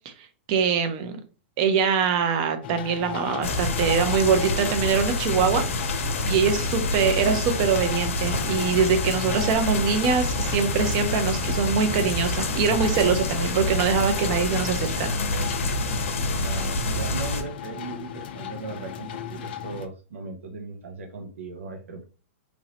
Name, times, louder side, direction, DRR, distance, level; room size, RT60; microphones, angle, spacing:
voice 1, 0.5-1.2 1.6-5.6 5.9-15.1, right 6 dB, 30° right, 6 dB, 0.5 m, -23 dB
sound 1, 2.6-19.9, left 9 dB, 45° left, 0.4 m, -37 dB
sound 2, 3.1-16.0, right 2 dB, 45° right, 1.1 m, -43 dB
sound 3, 3.4-17.4, left 2 dB, 85° left, 0.7 m, -27 dB
voice 2, 16.3-22.0, right 3 dB, 85° right, 4 dB, 0.6 m, -37 dB
3.1 x 2.6 x 2.8 m, 0.36 s
hypercardioid pair, 170°, 7 cm